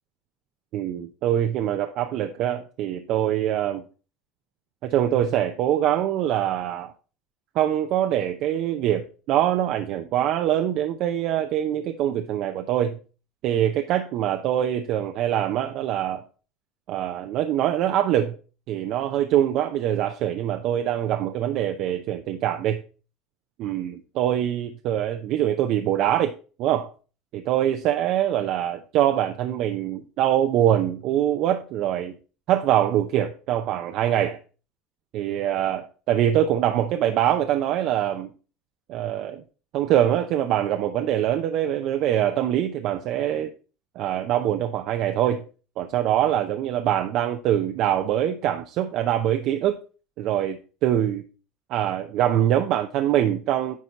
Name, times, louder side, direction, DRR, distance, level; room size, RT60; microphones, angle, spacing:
voice 1, 0.7-3.8 4.8-6.9 7.5-13.0 13.4-16.2 16.9-18.4 18.7-22.8 23.6-26.3 26.6-26.9 27.3-32.1 32.5-34.4 35.1-38.3 38.9-39.4 39.7-43.5 44.0-45.4 45.8-49.8 50.2-51.2 51.7-53.8, right 11 dB, 60° right, 0.6 m, -24 dB
9.4 x 4.2 x 4.0 m
hypercardioid pair, 90°, 0 cm